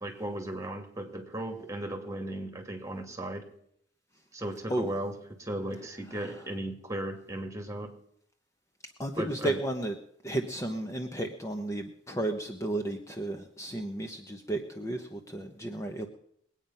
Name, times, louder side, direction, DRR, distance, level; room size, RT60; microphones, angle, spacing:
voice 1, 0.0-3.4 4.3-5.1 5.4-7.9 9.2-9.6, right 1 dB, 15° right, 4 dB, 2.3 m, -36 dB
voice 2, 9.0-9.9 10.2-16.1, right 1 dB, 15° left, 5 dB, 1.0 m, -33 dB
22.0 x 9.1 x 5.6 m, 0.69 s
head